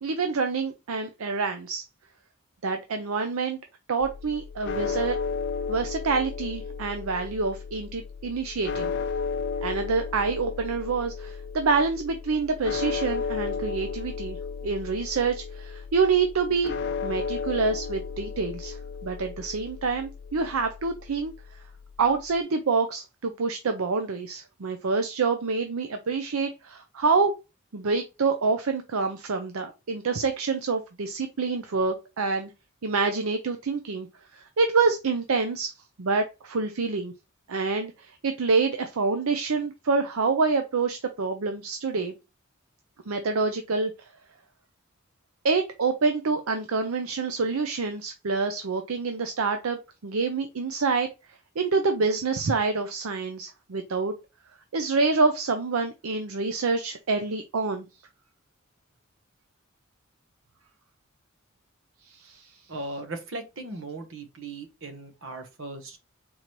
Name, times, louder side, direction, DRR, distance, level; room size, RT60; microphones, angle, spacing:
voice 1, 0.0-1.8 2.6-3.6 3.9-5.2 5.7-8.9 9.6-14.4 14.6-16.7 17.0-21.3 22.0-27.3 27.7-32.5 32.8-34.1 34.3-35.7 36.0-37.1 37.5-42.1 43.1-44.1 45.4-51.1 51.6-54.1 54.7-57.9 62.1-62.5, right 4 dB, 80° right, 0.6 m, -27 dB
sound 1, 4.0-22.4, left 5 dB, 55° left, 0.5 m, -34 dB
voice 2, 62.7-66.0, right 2 dB, 65° right, 1.1 m, -38 dB
4.4 x 3.9 x 3.1 m
head